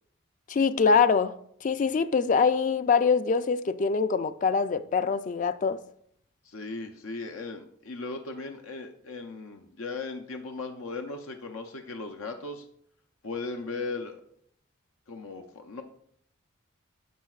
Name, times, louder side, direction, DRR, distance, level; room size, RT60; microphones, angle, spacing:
voice 1, 0.5-1.4 1.6-5.8, left 5 dB, 40° left, 0.3 m, -24 dB
voice 2, 6.4-12.6 13.2-14.2 15.1-15.8, left 3 dB, 85° left, 0.6 m, -37 dB
10.0 x 6.6 x 2.4 m
head